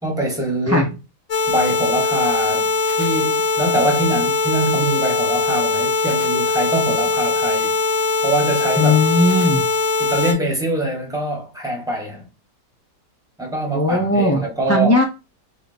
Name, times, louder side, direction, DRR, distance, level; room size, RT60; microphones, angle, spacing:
voice 1, 0.0-0.9 1.5-2.7 3.0-7.8 8.2-9.0 10.0-12.3 13.4-15.0, right 1 dB, 5° right, 1.3 m, -23 dB
sound 1, 1.3-10.3, left 4 dB, 70° left, 1.8 m, -20 dB
voice 2, 8.8-9.6 13.7-15.0, left 1 dB, 20° left, 0.4 m, -17 dB
4.3 x 3.5 x 2.6 m
omnidirectional pair, 1.5 m